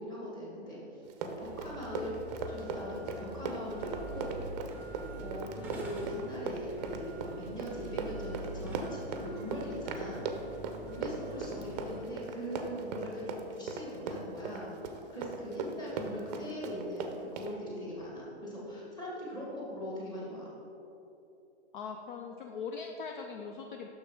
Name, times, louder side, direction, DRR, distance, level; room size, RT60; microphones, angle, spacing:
voice 1, 0.0-2.2 2.5-4.7 5.1-10.3 10.9-20.5, equal, 10° left, -5 dB, 1.6 m, -41 dB
Run, 1.1-17.5, right 5 dB, 40° right, 0.6 m, -38 dB
sound 1, 1.4-12.0, right 1 dB, 5° right, 0.8 m, -45 dB
voice 2, 21.7-23.9, left 5 dB, 45° left, 3 dB, 0.5 m, -40 dB
6.3 x 6.3 x 3.6 m, 2.8 s
hypercardioid pair, 130°, 34 cm